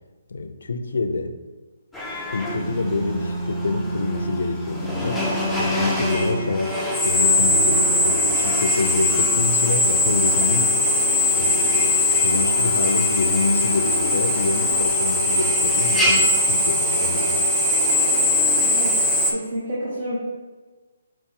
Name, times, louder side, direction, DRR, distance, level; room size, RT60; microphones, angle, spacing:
voice 1, 0.3-1.4 2.3-5.2 5.6-10.8 11.3-17.6, left 3 dB, 70° left, 8 dB, 0.4 m, -27 dB
Drill, 1.9-19.3, left 1 dB, ahead, 0.5 m, -21 dB
voice 2, 18.6-18.9 19.3-20.2, equal, 40° right, -7 dB, 1.2 m, -29 dB
5.6 x 2.5 x 3.6 m, 1.3 s
hypercardioid pair, 150°, 0 cm